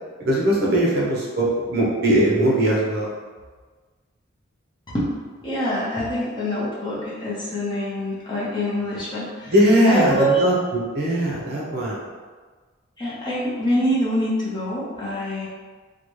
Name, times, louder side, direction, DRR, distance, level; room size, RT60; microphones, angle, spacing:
voice 1, 0.2-3.1 9.5-12.0, right 1 dB, 50° right, -4 dB, 0.7 m, -20 dB
voice 2, 5.4-9.5 9.9-10.5 13.0-15.5, equal, 20° left, -8 dB, 0.7 m, -25 dB
3.9 x 2.2 x 3.1 m, 1.4 s
head